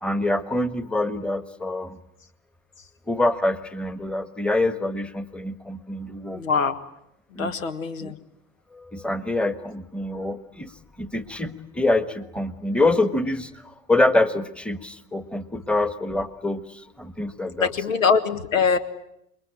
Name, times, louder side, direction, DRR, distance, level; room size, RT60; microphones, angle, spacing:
voice 1, 0.0-2.0 3.1-6.4 7.3-7.5 8.0-8.1 8.7-10.7 11.0-17.7, left 2 dB, 5° left, 13 dB, 1.4 m, -25 dB
voice 2, 6.3-6.8 7.4-8.2 17.6-18.8, left 5 dB, 75° left, 9 dB, 1.9 m, -23 dB
27.5 x 23.0 x 8.8 m, 0.78 s
figure-of-eight pair, 75°, 40 cm